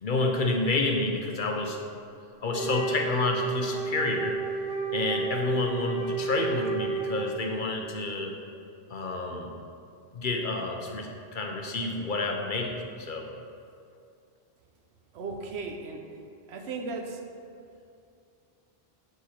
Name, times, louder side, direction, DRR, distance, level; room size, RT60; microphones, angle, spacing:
voice 1, 0.0-1.8 2.4-4.4 4.9-8.4 8.9-9.5 10.1-13.3, left 3 dB, 55° left, 2 dB, 0.8 m, -29 dB
Wind instrument woodwind instrument, 2.5-7.7, right 5 dB, 5° right, 1.2 m, -32 dB
voice 2, 15.1-16.2 16.5-17.2, right 3 dB, 80° right, 4 dB, 1.0 m, -36 dB
7.9 x 4.8 x 4.2 m, 2.5 s
omnidirectional pair, 1.1 m